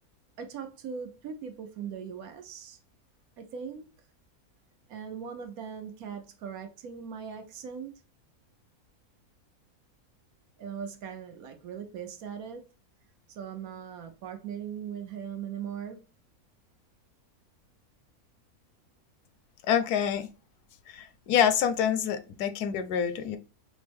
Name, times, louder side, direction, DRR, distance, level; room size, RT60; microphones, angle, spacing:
voice 1, 0.4-2.8 3.4-3.9 4.9-7.9 10.6-12.7 13.3-16.0, right 7 dB, 75° right, 1.1 m, -39 dB
voice 2, 19.7-20.3 20.9-23.4, left 8 dB, 85° left, 1.1 m, -26 dB
5.2 x 2.0 x 3.4 m
omnidirectional pair, 1.6 m